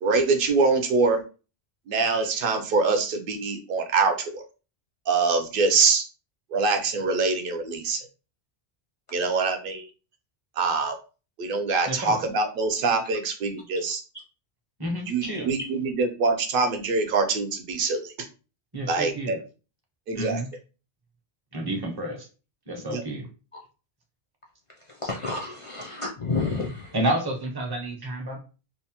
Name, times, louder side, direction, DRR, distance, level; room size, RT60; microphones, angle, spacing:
voice 1, 0.0-1.2 1.9-4.4 5.1-6.1 6.5-8.1 9.1-9.9 10.6-11.0 11.4-14.0 15.1-18.1 18.9-19.4 20.1-20.4 22.9-23.0, right 4 dB, 65° right, 5 dB, 0.7 m, -24 dB
voice 2, 11.9-12.3 14.8-15.5 18.7-19.4 20.1-20.5 21.5-22.3 22.7-23.3 26.9-28.4, right 1 dB, 30° right, 2 dB, 0.5 m, -30 dB
voice 3, 24.9-26.9, left 3 dB, 50° left, -1 dB, 0.4 m, -30 dB
2.7 x 2.0 x 2.8 m, 0.33 s
omnidirectional pair, 1.1 m